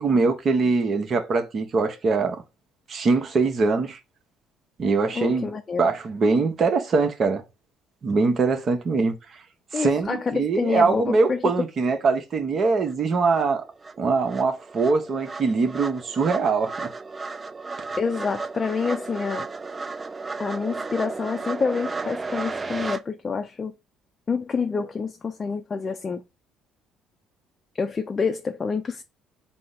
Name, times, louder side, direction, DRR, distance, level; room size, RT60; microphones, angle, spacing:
voice 1, 0.0-2.4 2.9-4.0 4.8-5.5 5.8-7.4 8.0-9.2 9.7-13.6 14.0-16.9, right 4 dB, 50° right, 0.9 m, -22 dB
voice 2, 5.1-5.8 9.7-11.4 18.0-19.5 20.4-23.7 24.3-26.2 27.8-29.0, left 5 dB, 35° left, 0.4 m, -27 dB
sound 1, 12.9-13.0 13.3-23.0, right 4 dB, 25° right, 0.5 m, -34 dB
4.0 x 2.1 x 3.9 m
hypercardioid pair, 65°, 0 cm